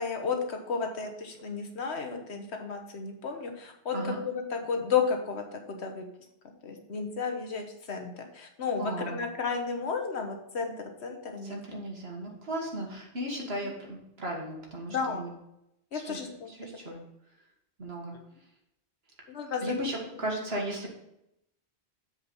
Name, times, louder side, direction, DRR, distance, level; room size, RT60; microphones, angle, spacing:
voice 1, 0.0-6.1 6.6-11.8 13.4-13.7 14.9-15.2 15.9-16.5 19.3-19.6, left 5 dB, 80° left, 4 dB, 1.4 m, -33 dB
voice 2, 8.8-9.2 11.4-15.3 15.9-16.2 16.5-17.0 17.8-18.2 19.5-20.9, right 1 dB, 65° right, 0 dB, 1.9 m, -36 dB
7.8 x 4.9 x 5.3 m, 0.82 s
omnidirectional pair, 1.1 m